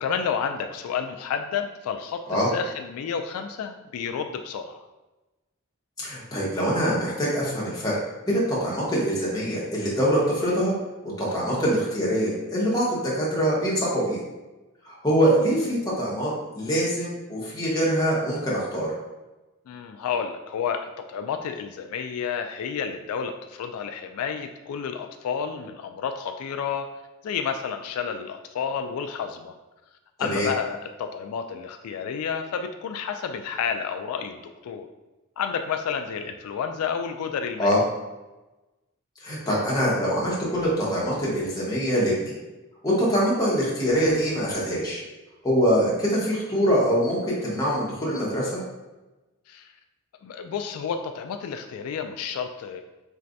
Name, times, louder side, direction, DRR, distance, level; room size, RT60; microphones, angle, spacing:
voice 1, 0.0-4.8 11.5-11.6 19.7-26.9 27.2-29.5 30.2-34.9 35.4-37.7 49.5-49.7 50.2-52.8, left 6 dB, 90° left, 6 dB, 0.3 m, -30 dB
voice 2, 6.0-8.0 8.3-10.7 11.2-14.2 14.8-18.9 30.2-30.5 37.6-37.8 39.2-42.3 42.8-45.0 45.4-48.6, equal, 15° left, -6 dB, 1.1 m, -24 dB
4.5 x 3.2 x 2.6 m, 1.1 s
head